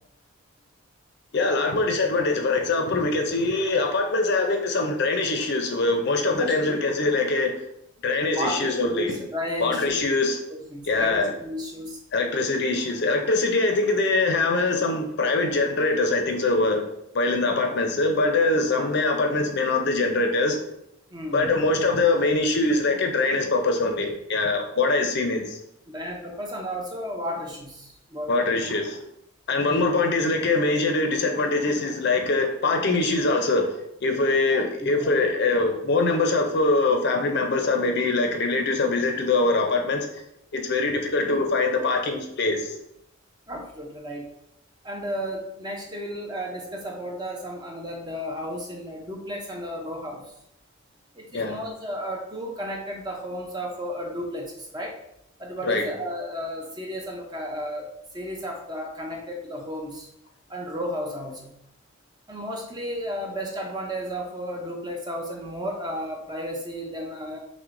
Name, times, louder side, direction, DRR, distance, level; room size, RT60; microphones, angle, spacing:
voice 1, 1.3-7.5 8.0-9.1 9.6-10.4 10.8-11.3 12.1-16.8 17.1-20.6 21.3-25.6 28.3-29.0 29.5-40.1 40.5-42.6 51.3-51.6 55.6-55.8, left 3 dB, 50° left, 4 dB, 0.4 m, -23 dB
voice 2, 6.3-6.8 8.3-10.1 10.5-12.0 21.1-21.6 25.9-28.3 29.7-29.8 34.5-35.2 43.5-44.3 44.8-50.3 51.1-55.0 55.4-60.1 60.5-61.5 62.3-67.4, equal, 20° right, 0 dB, 0.5 m, -33 dB
5.8 x 2.1 x 2.5 m, 0.78 s
head